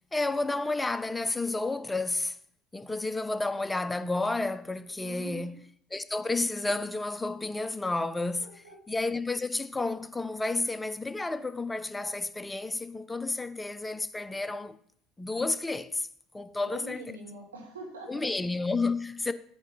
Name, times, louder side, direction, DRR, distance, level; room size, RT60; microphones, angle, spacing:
voice 1, 0.1-2.4 2.7-5.6 5.9-8.5 8.9-14.8 15.2-16.1 16.3-17.0 18.1-19.3, left 2 dB, 15° left, 0.5 m, -31 dB
voice 2, 5.0-5.6 8.4-8.8 16.7-18.3, right 2 dB, 85° right, 1.9 m, -44 dB
8.7 x 3.7 x 6.8 m
hypercardioid pair, 65°, 0 cm